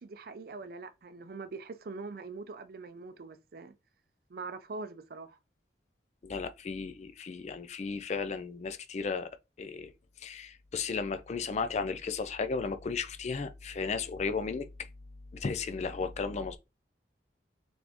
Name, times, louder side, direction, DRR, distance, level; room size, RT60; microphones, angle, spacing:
voice 1, 0.0-3.7 4.3-5.4, right 3 dB, 55° right, 0.5 m, -43 dB
voice 2, 6.2-9.3 9.6-9.9 10.2-14.7 15.3-16.6, left 4 dB, 40° left, 0.4 m, -34 dB
4.1 x 3.4 x 2.9 m
head